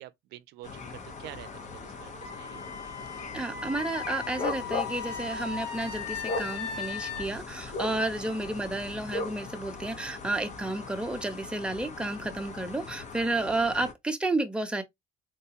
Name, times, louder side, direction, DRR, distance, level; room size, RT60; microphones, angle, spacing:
voice 1, 0.0-2.7 8.2-8.3, right 15 dB, 85° right, 0.4 m, -47 dB
sound 1, 0.6-13.9, left 3 dB, 45° left, 0.8 m, -39 dB
Wind instrument woodwind instrument, 2.2-7.3, left 6 dB, 90° left, 1.9 m, -38 dB
voice 2, 3.3-14.8, right 2 dB, 5° right, 0.6 m, -31 dB
3.8 x 2.3 x 2.8 m
cardioid pair, 110°, 17 cm